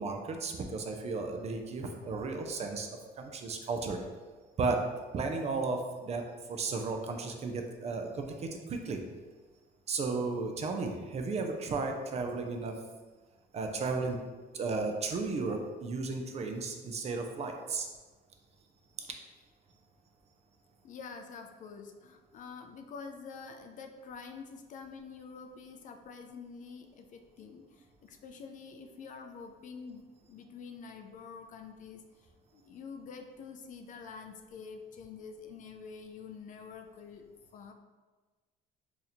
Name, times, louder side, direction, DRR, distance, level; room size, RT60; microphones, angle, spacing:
voice 1, 0.0-4.0 4.6-4.9 5.1-9.0 9.9-12.8 13.5-14.2 14.5-17.9, right 3 dB, 40° right, 4 dB, 0.5 m, -34 dB
voice 2, 20.8-32.3 32.5-37.3 37.5-37.7, left 5 dB, 50° left, 6 dB, 0.4 m, -47 dB
2.8 x 2.6 x 4.1 m, 1.3 s
cardioid pair, 110°, 17 cm